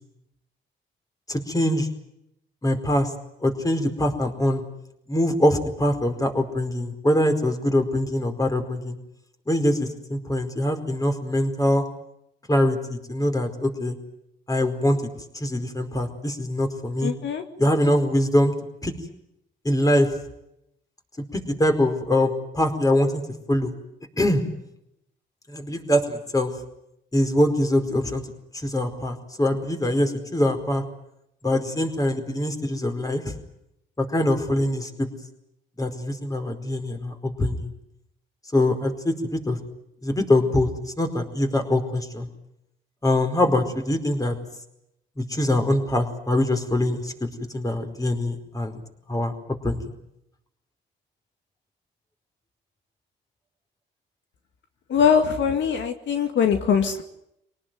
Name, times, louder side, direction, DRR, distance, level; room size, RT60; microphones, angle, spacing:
voice 1, 1.3-1.9 2.6-3.1 3.4-4.6 5.1-9.0 9.5-11.8 12.5-13.9 14.5-15.0 15.3-17.1 17.6-18.5 18.8-18.9 19.6-20.1 21.3-23.2 23.5-23.7 24.2-24.4 25.5-26.5 27.1-28.2 28.5-30.8 31.4-33.3 34.0-35.1 35.8-37.7 38.5-39.6 40.0-40.7 41.0-42.3 43.0-44.3 45.2-48.8 49.1-49.3 49.6-49.9, left 1 dB, 15° left, 6 dB, 4.8 m, -23 dB
voice 2, 17.0-17.4 54.9-57.0, left 7 dB, 70° left, 6 dB, 2.2 m, -22 dB
25.5 x 18.5 x 9.4 m, 0.80 s
cardioid pair, 90°, 20 cm